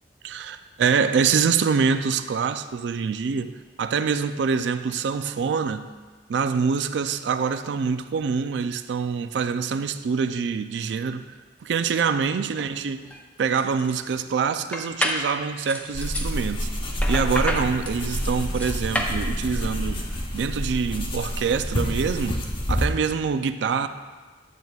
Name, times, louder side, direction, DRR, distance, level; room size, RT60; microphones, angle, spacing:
voice 1, 0.2-3.5 3.8-5.9 6.3-11.2 11.6-13.1 13.4-16.7 17.1-20.1 20.3-23.9, right 6 dB, 80° right, 0.4 m, -25 dB
sound 1, 13.0-13.2 13.6-14.1 14.7-15.3 15.7-16.3 17.0-19.2, equal, 10° left, 0.6 m, -29 dB
sound 2, 15.9-22.9, equal, 30° left, 0.9 m, -28 dB
9.2 x 7.9 x 2.3 m
head